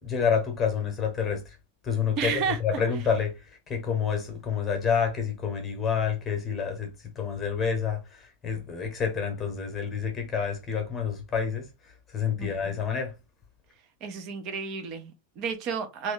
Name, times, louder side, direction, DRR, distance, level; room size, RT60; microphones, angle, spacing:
voice 1, 0.0-1.6 1.8-13.1, left 7 dB, 25° left, 1.1 m, -28 dB
voice 2, 2.2-2.6 12.4-12.7 14.0-16.1, right 6 dB, 40° right, 0.8 m, -32 dB
3.0 x 2.6 x 3.6 m
figure-of-eight pair, 90°, 0 cm